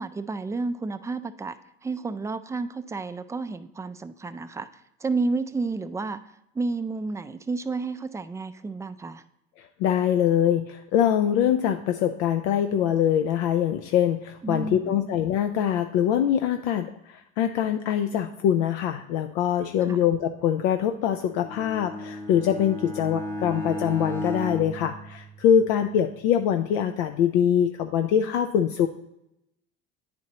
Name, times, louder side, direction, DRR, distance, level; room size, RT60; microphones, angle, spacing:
voice 1, 0.0-1.6 1.8-4.7 5.0-6.2 6.5-9.2 14.4-15.1 19.9-20.0, right 3 dB, 10° right, 10 dB, 0.3 m, -31 dB
voice 2, 9.8-28.9, left 9 dB, 75° left, 7 dB, 0.5 m, -23 dB
Bowed string instrument, 21.2-25.9, equal, 5° left, 0.8 m, -34 dB
9.6 x 4.3 x 2.8 m, 0.84 s
hypercardioid pair, 75°, 33 cm